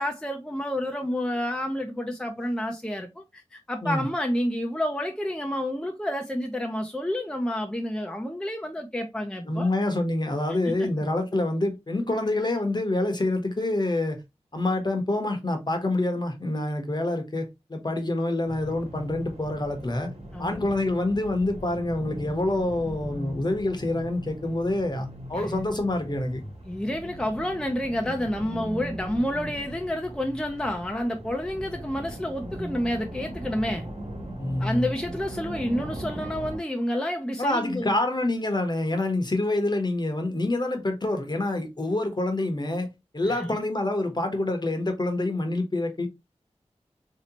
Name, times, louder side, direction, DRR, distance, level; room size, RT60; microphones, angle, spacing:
voice 1, 0.0-9.7 10.6-10.9 20.3-20.6 25.3-25.6 26.6-33.9 34.6-37.9 43.2-43.5, left 1 dB, 5° left, 0.5 m, -29 dB
voice 2, 9.5-14.2 14.5-17.4 17.7-20.1 20.4-26.4 34.4-34.9 37.4-42.9 43.1-46.1, left 2 dB, 40° left, 0.9 m, -27 dB
sound 1, 18.5-36.6, right 1 dB, 65° right, 1.3 m, -39 dB
3.1 x 2.8 x 2.8 m
wide cardioid pair, 55°, 12 cm